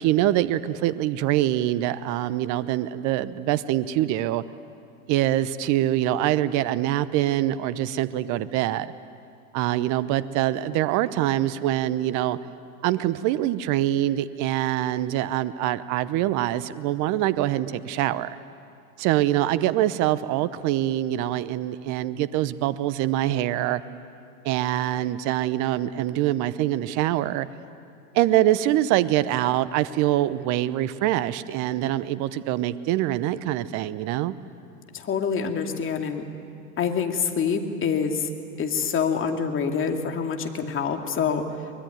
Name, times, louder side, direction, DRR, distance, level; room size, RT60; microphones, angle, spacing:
voice 1, 0.0-4.4 5.1-8.9 9.5-12.4 12.8-18.4 19.0-23.8 24.4-27.5 28.1-34.3, right 13 dB, 45° right, 15 dB, 0.9 m, -24 dB
voice 2, 34.9-36.2 36.8-38.3 38.6-41.4, left 6 dB, 30° left, 4 dB, 2.5 m, -26 dB
24.0 x 21.0 x 9.3 m, 2.4 s
hypercardioid pair, 100°, 43 cm